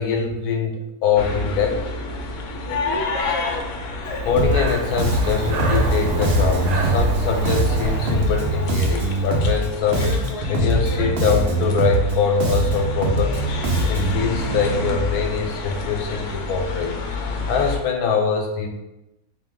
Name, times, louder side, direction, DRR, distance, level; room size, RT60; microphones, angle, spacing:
voice 1, 0.0-1.9 4.2-10.2 10.5-13.4 13.9-16.9 17.5-18.7, left 5 dB, 90° left, 3 dB, 1.1 m, -23 dB
sound 1, 1.2-17.8, left 2 dB, 65° left, 0.9 m, -29 dB
Breathing, 4.2-9.1, right 1 dB, 75° right, 1.1 m, -28 dB
Bass guitar, 4.4-4.7 5.0-9.7 9.9-14.2, right 1 dB, 60° right, 0.6 m, -22 dB
3.3 x 2.6 x 3.6 m, 0.94 s
omnidirectional pair, 1.6 m